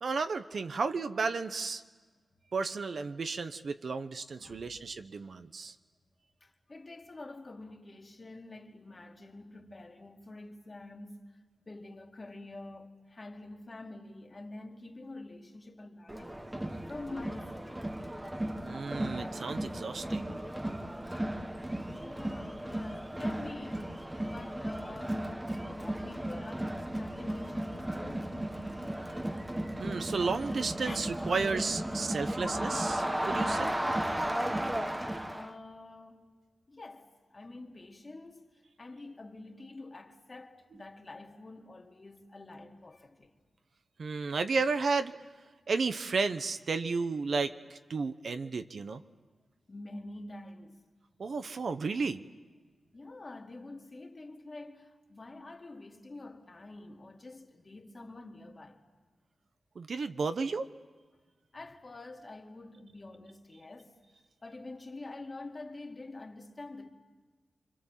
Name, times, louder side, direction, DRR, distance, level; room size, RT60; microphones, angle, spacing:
voice 1, 0.0-1.8 2.5-5.7 18.6-20.3 29.8-33.7 44.0-45.2 45.7-49.0 51.2-52.2 59.8-60.7, right 4 dB, 65° right, 0.9 m, -33 dB
voice 2, 6.4-16.4 16.9-17.9 22.0-24.0 24.3-29.1 30.8-31.4 35.3-36.3 36.7-43.3 49.7-50.8 52.9-58.8 61.5-64.0 64.4-66.9, left 2 dB, 35° left, 2.3 m, -47 dB
Crowd, 16.1-35.5, right 1 dB, 10° right, 1.1 m, -35 dB
29.5 x 25.0 x 7.5 m
wide cardioid pair, 115°, 0 cm